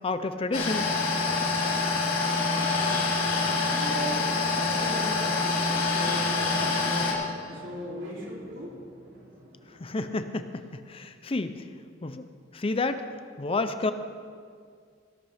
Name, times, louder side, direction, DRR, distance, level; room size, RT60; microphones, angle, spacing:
voice 1, 0.0-0.9 9.8-11.6 12.0-12.2 12.5-13.0 13.4-13.9, left 3 dB, 30° left, 10 dB, 0.5 m, -30 dB
sound 1, 0.5-7.1, left 3 dB, 50° left, 3.0 m, -26 dB
voice 2, 2.5-10.1, right 1 dB, 85° right, -4 dB, 3.1 m, -39 dB
18.0 x 11.5 x 3.5 m, 2.1 s
head